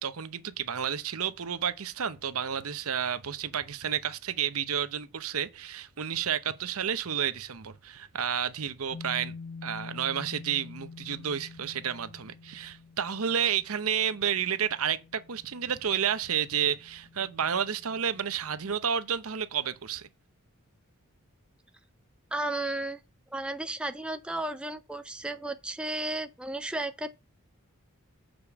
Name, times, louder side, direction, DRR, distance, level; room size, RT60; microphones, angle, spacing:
voice 1, 0.0-9.3 9.6-20.1, right 8 dB, 70° right, 0.8 m, -31 dB
sound 1, 8.9-18.4, left 4 dB, 60° left, 1.4 m, -47 dB
voice 2, 22.3-23.0 23.3-27.2, right 1 dB, 5° right, 0.4 m, -33 dB
6.9 x 5.1 x 7.1 m
head